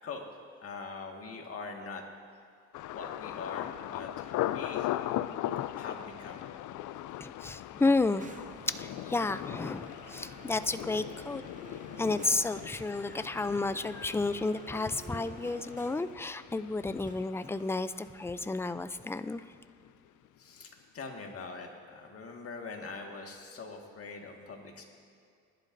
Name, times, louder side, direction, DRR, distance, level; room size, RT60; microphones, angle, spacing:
voice 1, 0.6-2.0 2.9-4.9 5.8-6.4 20.4-24.8, left 4 dB, 50° left, 2 dB, 1.8 m, -43 dB
Thunder, 2.7-18.5 18.8-19.4 19.8-20.1, left 13 dB, 80° left, 0.4 m, -39 dB
voice 2, 7.2-11.4 12.0-19.4, left 3 dB, 10° left, 13 dB, 0.3 m, -32 dB
sound 1, 8.2-16.2 17.1-18.0, right 4 dB, 25° right, 0.8 m, -51 dB
20.0 x 11.0 x 2.6 m, 2.4 s
cardioid pair, 90°, 30 cm